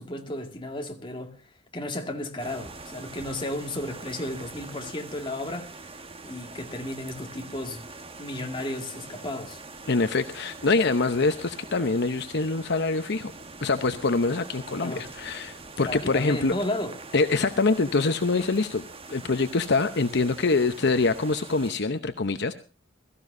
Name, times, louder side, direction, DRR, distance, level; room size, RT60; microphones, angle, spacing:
voice 1, 0.0-1.4 1.7-5.8 6.2-7.9 8.2-9.6 14.8-15.1 15.8-17.0, left 1 dB, 25° left, 2.2 m, -33 dB
sound 1, 2.4-21.7, right 3 dB, 30° right, 1.3 m, -44 dB
voice 2, 9.9-13.3 13.6-16.5 17.1-22.5, left 3 dB, 60° left, 0.9 m, -25 dB
22.0 x 14.0 x 2.6 m
head